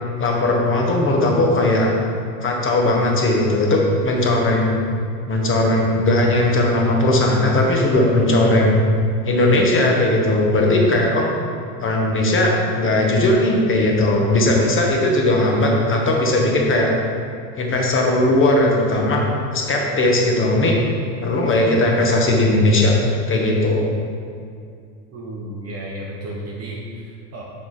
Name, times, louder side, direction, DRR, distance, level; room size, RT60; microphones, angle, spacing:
voice 1, 0.2-1.9 2.4-4.8 5.3-8.8 9.2-11.3 11.8-16.9 17.5-19.2 19.5-20.8 21.2-23.9, left 1 dB, 25° left, -1 dB, 1.2 m, -18 dB
voice 2, 25.1-27.4, right 1 dB, 30° right, -3 dB, 1.0 m, -33 dB
5.9 x 4.8 x 4.1 m, 2.3 s
hypercardioid pair, 100°, 48 cm